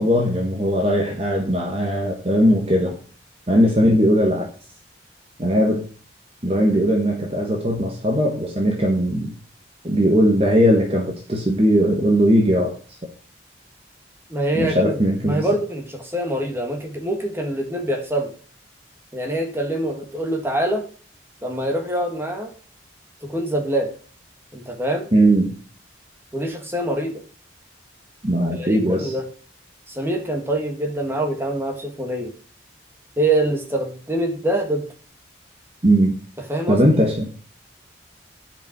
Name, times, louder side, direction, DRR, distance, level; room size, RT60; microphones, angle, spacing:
voice 1, 0.0-3.0 3.5-4.5 5.4-5.9 6.4-9.3 9.8-12.8 14.5-15.5 25.1-25.5 28.2-29.1 35.8-36.1 36.7-37.3, equal, 30° right, 0 dB, 1.2 m, -19 dB
voice 2, 14.3-15.0 15.2-18.3 19.1-20.8 21.4-22.5 23.2-23.9 24.5-25.1 26.3-27.1 28.4-29.2 29.9-32.3 33.2-34.8 36.5-36.8, right 1 dB, 15° right, 2 dB, 1.7 m, -24 dB
10.5 x 5.2 x 4.6 m, 0.42 s
head